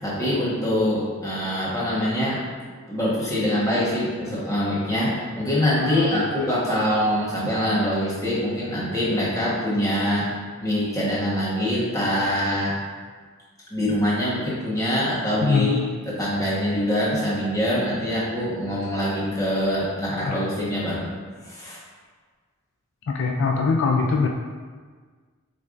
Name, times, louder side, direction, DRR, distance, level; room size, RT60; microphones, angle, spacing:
voice 1, 0.0-2.4 2.9-10.2 10.6-12.7 13.7-15.8 16.1-21.1 21.4-21.8, equal, 15° left, -8 dB, 1.1 m, -24 dB
voice 2, 5.8-6.5 15.4-15.9 20.2-20.4 23.1-24.3, left 4 dB, 55° left, 2 dB, 0.3 m, -23 dB
6.4 x 3.3 x 2.5 m, 1.5 s
head